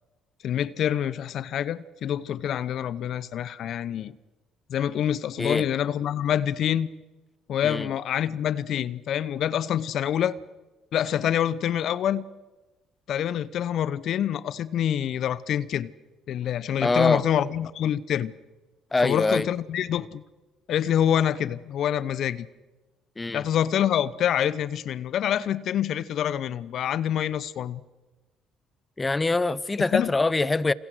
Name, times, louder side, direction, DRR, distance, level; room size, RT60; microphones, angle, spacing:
voice 1, 0.4-4.2 4.7-6.9 7.5-10.4 10.9-12.2 13.1-15.9 16.3-18.3 19.0-20.2 20.7-22.5 23.3-27.8 29.9-30.1, left 10 dB, 60° left, 0.8 m, -26 dB
voice 2, 16.8-17.2 18.9-19.5 23.2-23.4 29.0-30.7, left 3 dB, 20° left, 1.0 m, -24 dB
29.5 x 28.0 x 6.4 m
hypercardioid pair, 55°, 0 cm